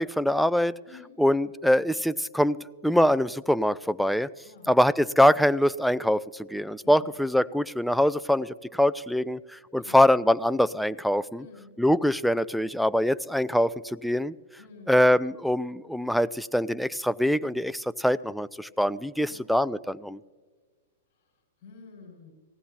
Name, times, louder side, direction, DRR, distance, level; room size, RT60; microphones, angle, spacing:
voice 1, 0.0-0.7 1.2-4.3 4.7-11.5 11.8-14.3 14.9-20.2, left 1 dB, ahead, 0.3 m, -24 dB
voice 2, 11.4-11.7 14.6-15.0 19.1-19.4 21.1-22.3, left 5 dB, 50° left, 5.3 m, -50 dB
18.5 x 16.0 x 2.9 m
hypercardioid pair, 125°, 0 cm